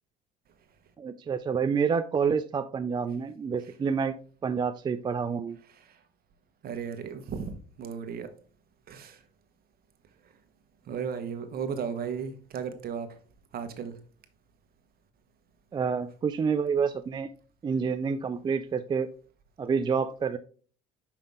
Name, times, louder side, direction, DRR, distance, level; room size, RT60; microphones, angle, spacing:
voice 1, 1.0-5.6 15.7-17.3 17.6-19.1 19.6-20.4, right 6 dB, 20° right, 9 dB, 0.3 m, -28 dB
voice 2, 6.6-7.5 7.8-8.3 8.9-9.2 10.9-13.1 13.5-14.0, right 6 dB, 50° right, 8 dB, 1.1 m, -35 dB
5.6 x 5.3 x 3.5 m, 0.42 s
cardioid pair, 105°, 20 cm